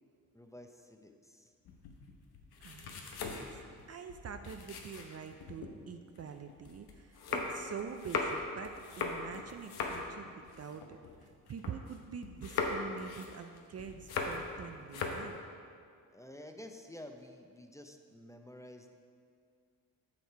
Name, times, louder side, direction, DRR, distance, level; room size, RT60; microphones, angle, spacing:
voice 1, 0.3-1.5 16.1-18.9, left 1 dB, 10° left, 5 dB, 0.6 m, -51 dB
sound 1, 1.7-5.7 6.2-12.0 12.2-14.6 14.8-15.3, left 4 dB, 85° left, 0.9 m, -39 dB
voice 2, 2.6-2.9 3.3-15.4, right 6 dB, 45° right, 7 dB, 0.5 m, -46 dB
7.3 x 6.5 x 4.6 m, 2.2 s
cardioid pair, 60°, 37 cm